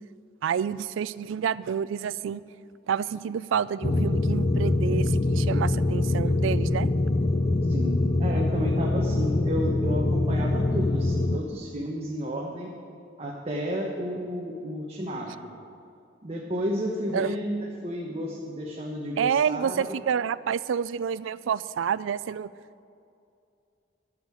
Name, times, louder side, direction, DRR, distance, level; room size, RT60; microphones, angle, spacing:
voice 1, 0.4-2.4 2.9-6.9 17.1-17.3 19.2-22.5, right 7 dB, 80° right, 17 dB, 0.3 m, -28 dB
sound 1, 3.8-11.4, left 2 dB, 30° left, 0.4 m, -24 dB
voice 2, 7.7-12.7 13.2-15.5 16.2-19.8, equal, 30° right, -2 dB, 1.1 m, -32 dB
12.0 x 6.6 x 8.4 m, 2.5 s
head